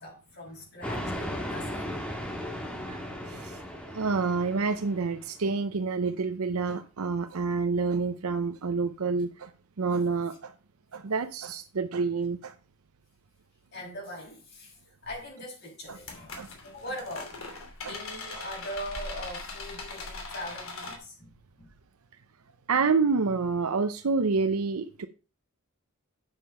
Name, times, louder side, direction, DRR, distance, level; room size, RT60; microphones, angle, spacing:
voice 1, 0.0-2.0 13.7-17.4 17.8-21.3 21.6-21.7, equal, 50° left, 6.2 m, -41 dB
sound 1, 0.8-5.3, equal, 5° left, 1.7 m, -36 dB
voice 2, 3.3-3.6 3.9-9.5 9.8-10.5 10.9-12.5 16.4-16.5 17.8-17.9 22.7-25.1, right 4 dB, 85° right, 0.7 m, -28 dB
sound 2, 15.0-15.2 15.9-21.0, left 3 dB, 70° left, 2.8 m, -40 dB
8.2 x 6.7 x 5.5 m
head